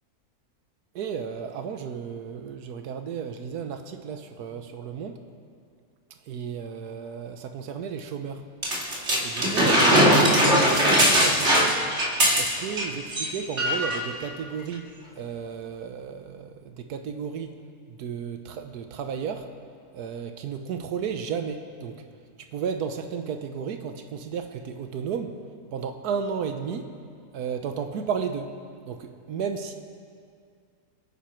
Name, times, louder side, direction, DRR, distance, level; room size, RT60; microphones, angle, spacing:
voice 1, 0.9-5.2 6.3-8.4 9.2-11.8 12.4-14.9 15.2-17.5 18.0-19.4 19.9-22.0 22.5-25.3 25.7-26.9 27.3-28.5 28.9-29.7, right 7 dB, 85° right, 6 dB, 1.4 m, -33 dB
sound 1, 8.6-12.8 13.1-13.3 13.6-14.0 14.7-14.8, equal, 45° right, 2.6 m, -20 dB
28.5 x 9.7 x 4.5 m, 2.2 s
omnidirectional pair, 1.6 m